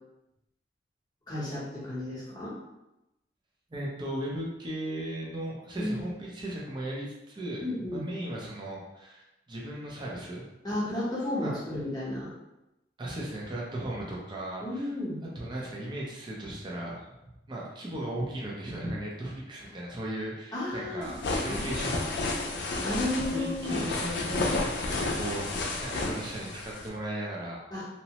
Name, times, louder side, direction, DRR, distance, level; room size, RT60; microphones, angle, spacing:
voice 1, 1.3-2.6 5.8-6.0 7.6-8.1 10.6-12.3 14.6-15.2 20.5-21.1 21.5-21.7 22.8-23.9 27.7-27.9, left 1 dB, 25° left, -7 dB, 0.8 m, -33 dB
voice 2, 3.7-10.4 11.4-11.6 13.0-14.9 15.4-17.1 17.5-22.0 23.3-27.6, right 1 dB, 25° right, -4 dB, 0.5 m, -36 dB
sound 1, 21.0-26.9, left 2 dB, 65° left, 0.4 m, -31 dB
2.9 x 2.0 x 2.8 m, 0.93 s
head